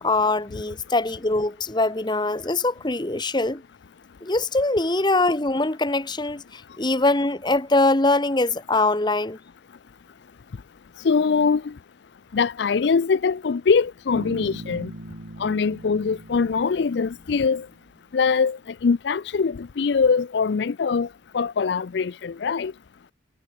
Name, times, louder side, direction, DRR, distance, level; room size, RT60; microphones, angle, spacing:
voice 1, 0.0-3.6 4.2-9.4, left 2 dB, 25° left, 1.1 m, -23 dB
voice 2, 11.0-11.7 12.3-14.9 15.4-17.7 18.1-21.1 21.3-22.7, left 5 dB, 60° left, 0.4 m, -22 dB
Bass guitar, 14.1-17.9, right 1 dB, 70° right, 2.3 m, -40 dB
head